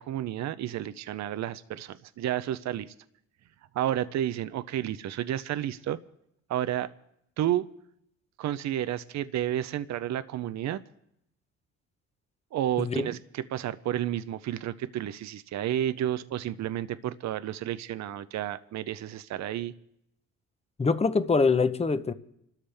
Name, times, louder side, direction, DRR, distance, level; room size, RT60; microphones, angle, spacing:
voice 1, 0.0-2.9 3.7-6.0 6.5-6.9 7.4-7.7 8.4-10.8 12.5-19.7, right 12 dB, 65° right, 0.7 m, -31 dB
voice 2, 12.8-13.1 20.8-22.1, left 4 dB, 20° left, 0.8 m, -24 dB
27.0 x 13.0 x 3.5 m
cardioid pair, 90°, 30 cm